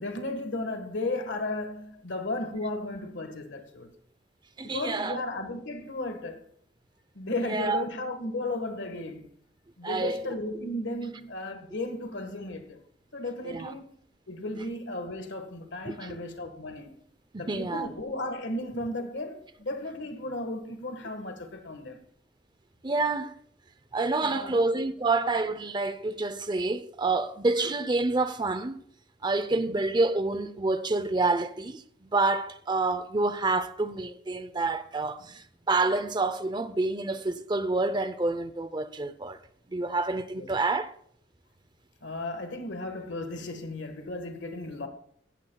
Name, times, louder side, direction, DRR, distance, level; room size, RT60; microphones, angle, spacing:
voice 1, 0.0-3.9 4.6-6.4 7.1-9.3 9.8-12.8 13.1-13.9 14.3-17.0 17.4-22.0 24.2-24.6 29.5-29.8 40.3-40.5 42.0-44.9, left 2 dB, 85° left, 1.6 m, -35 dB
voice 2, 4.6-5.2 7.5-7.8 9.8-10.2 13.4-13.7 15.9-16.2 17.3-17.9 22.8-23.3 23.9-28.8 29.2-39.4 39.7-41.0, right 3 dB, 25° right, 0.6 m, -28 dB
15.0 x 14.5 x 2.3 m
head